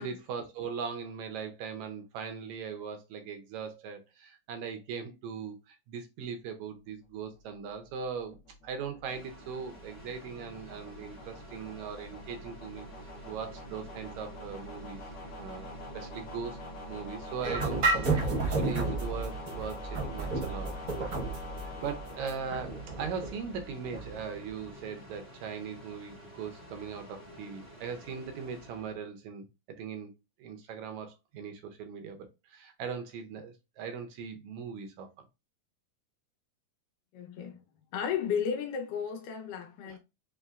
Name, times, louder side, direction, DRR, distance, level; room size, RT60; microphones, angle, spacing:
voice 1, 0.0-8.4 8.6-12.9 13.3-15.0 15.3-15.7 15.9-16.6 16.9-20.7 21.6-29.5 29.8-30.1 30.4-35.1 39.9-40.0, right 6 dB, 75° right, 1.8 m, -39 dB
sound 1, 7.2-23.4, left 1 dB, 70° left, 1.2 m, -46 dB
weird ambience, 9.0-29.0, equal, 35° left, 0.9 m, -50 dB
sound 2, 17.4-24.2, right 3 dB, 45° right, 1.1 m, -32 dB
voice 2, 37.1-37.6 37.9-40.0, left 7 dB, 90° left, 2.4 m, -34 dB
5.5 x 3.0 x 2.4 m
omnidirectional pair, 3.6 m